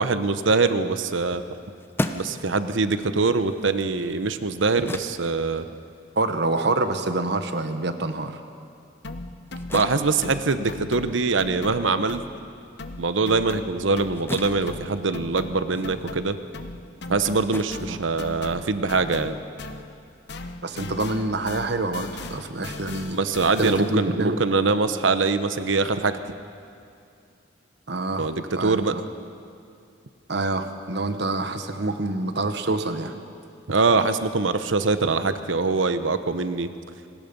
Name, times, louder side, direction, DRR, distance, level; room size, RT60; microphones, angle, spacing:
voice 1, 0.0-1.4 2.1-5.6 9.7-12.2 13.0-16.4 17.1-19.4 23.1-26.2 28.2-28.9 33.7-36.7, right 3 dB, 85° right, 11 dB, 1.0 m, -23 dB
sound 1, 1.4-8.2 8.6-18.8, left 1 dB, 10° left, 0.8 m, -38 dB
voice 2, 6.2-8.4 17.9-18.0 20.6-23.2 23.6-24.4 27.9-28.3 28.6-29.0 30.3-33.2, right 2 dB, 60° right, 8 dB, 1.3 m, -26 dB
sound 2, 9.0-12.5 12.8-20.0 20.3-24.1, left 2 dB, 60° left, 1.0 m, -38 dB
27.5 x 19.5 x 5.4 m, 2.5 s
head